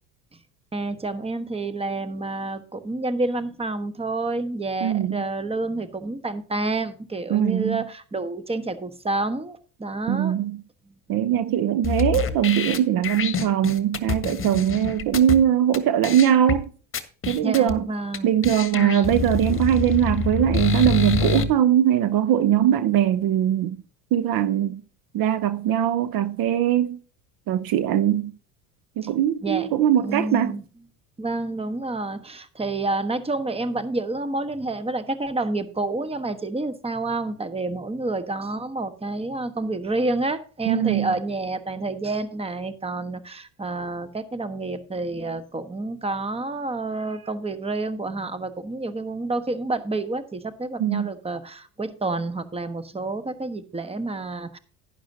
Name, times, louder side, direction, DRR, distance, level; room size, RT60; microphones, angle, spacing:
voice 1, 0.7-10.4 17.4-18.3 18.7-19.6 29.4-30.6 31.2-54.6, right 2 dB, 15° right, 1.3 m, -29 dB
voice 2, 4.8-5.2 7.3-7.8 10.1-10.6 11.1-16.7 17.3-17.9 18.2-23.8 24.1-24.8 25.1-27.0 27.5-28.3 29.0-30.6 40.7-41.1 50.8-51.1, right 10 dB, 50° right, 0.9 m, -21 dB
sound 1, 11.8-15.4 15.7-15.8 16.0-16.6 16.9-17.7 18.1-18.2 18.4-21.4, left 6 dB, 30° left, 1.5 m, -26 dB
11.5 x 10.5 x 2.8 m
hypercardioid pair, 80°, 44 cm